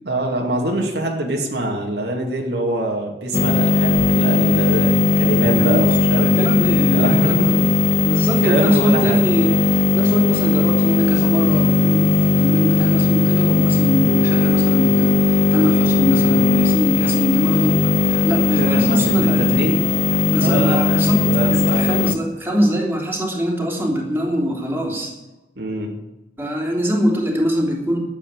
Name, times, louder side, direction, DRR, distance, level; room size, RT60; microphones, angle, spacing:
voice 1, 0.1-6.5 6.9-7.6 8.4-9.2 18.6-19.8 20.4-22.1 25.6-25.9, right 1 dB, 70° right, 0 dB, 2.4 m, -24 dB
sound 1, 3.3-22.2, left 3 dB, 40° left, 0.6 m, -17 dB
voice 2, 5.6-7.7 8.0-19.6 20.2-25.1 26.4-28.0, equal, 10° right, -2 dB, 3.2 m, -23 dB
12.0 x 8.4 x 8.1 m, 1.0 s
head